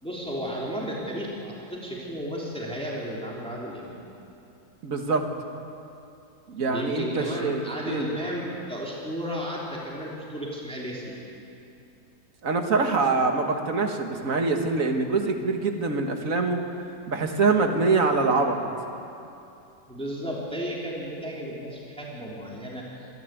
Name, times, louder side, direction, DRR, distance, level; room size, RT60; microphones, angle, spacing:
voice 1, 0.0-4.0 6.7-11.2 19.9-22.9, equal, 5° left, -4 dB, 3.1 m, -33 dB
voice 2, 4.8-5.3 6.5-8.1 12.4-16.6 17.1-18.6, right 3 dB, 55° right, 4 dB, 2.0 m, -24 dB
25.5 x 12.0 x 9.2 m, 2.7 s
omnidirectional pair, 1.7 m